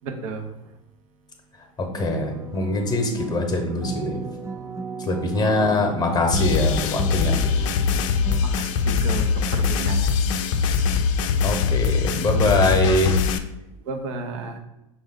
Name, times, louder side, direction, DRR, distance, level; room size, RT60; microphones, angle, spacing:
voice 1, 0.0-0.5 5.4-5.7 8.4-10.3 10.7-10.8 13.9-14.6, right 4 dB, 70° right, 3 dB, 0.7 m, -33 dB
voice 2, 1.8-4.2 5.0-7.7 11.4-13.2, left 2 dB, 25° left, 4 dB, 0.9 m, -23 dB
sound 1, 2.0-8.4, right 4 dB, 15° right, 0.3 m, -34 dB
sound 2, 6.3-13.4, left 5 dB, 65° left, 0.4 m, -22 dB
5.2 x 2.4 x 3.5 m, 0.89 s
hypercardioid pair, 80°, 17 cm